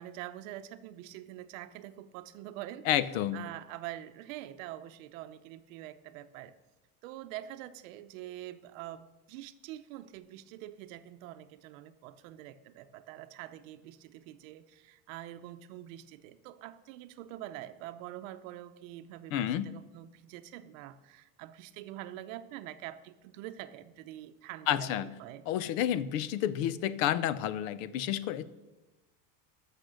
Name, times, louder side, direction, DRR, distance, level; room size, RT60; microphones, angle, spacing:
voice 1, 0.0-2.9 3.3-6.5 7.0-25.4, right 13 dB, 60° right, 11 dB, 0.7 m, -45 dB
voice 2, 2.9-3.5 19.3-19.8 24.7-25.1 25.5-28.4, left 11 dB, 65° left, 17 dB, 0.7 m, -30 dB
13.0 x 6.6 x 6.4 m, 1.1 s
cardioid pair, 175°, 45 cm